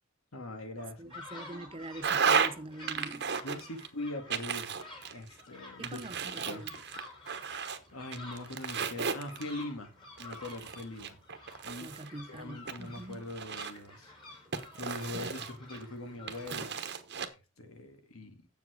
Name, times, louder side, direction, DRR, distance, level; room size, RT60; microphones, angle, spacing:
voice 1, 0.3-1.2 3.4-4.8 5.1-6.0 6.4-6.7 7.9-9.9 10.2-11.2 11.6-12.0 12.3-14.1 14.8-16.8 17.6-18.5, left 2 dB, 80° left, 1.9 m, -42 dB
sound 1, 0.8-16.7, left 2 dB, 25° left, 2.8 m, -51 dB
voice 2, 1.0-3.3 5.8-6.7 11.8-13.3, right 2 dB, 25° right, 0.5 m, -44 dB
sound 2, 2.0-2.5 2.9-3.9 4.3-5.4 5.8-7.8 8.1-9.6 10.2-12.1 12.7-13.9 14.5-15.8 16.3-17.3, right 6 dB, 55° right, 1.1 m, -33 dB
7.4 x 7.4 x 4.9 m
head